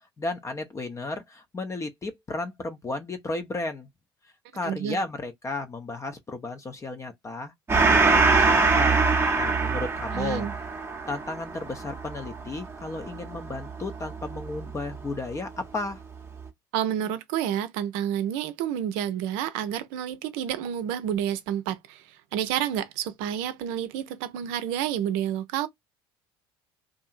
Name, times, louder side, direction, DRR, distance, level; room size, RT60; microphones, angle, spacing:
voice 1, 0.2-3.9 4.5-7.5 7.8-9.0 9.4-10.5 11.1-16.0, left 2 dB, 25° left, 0.5 m, -34 dB
voice 2, 4.6-5.0 10.1-10.5 16.7-25.7, right 10 dB, 65° right, 0.5 m, -29 dB
Gong, 7.7-14.7, right 4 dB, 20° right, 0.7 m, -23 dB
2.7 x 2.4 x 2.3 m
hypercardioid pair, 65°, 13 cm